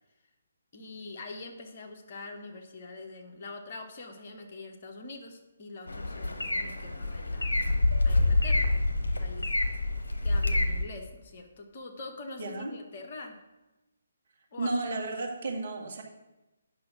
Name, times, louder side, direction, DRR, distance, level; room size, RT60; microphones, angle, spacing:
voice 1, 0.7-7.6 8.0-8.9 9.2-9.5 10.2-13.4 14.5-14.8, left 3 dB, 40° left, 3 dB, 1.3 m, -44 dB
sound 1, 5.9-10.8, left 2 dB, 65° left, 1.1 m, -27 dB
voice 2, 12.4-12.7 14.6-16.0, right 2 dB, 50° right, 0 dB, 1.8 m, -32 dB
9.4 x 6.2 x 6.1 m, 1.0 s
figure-of-eight pair, 140°, 0 cm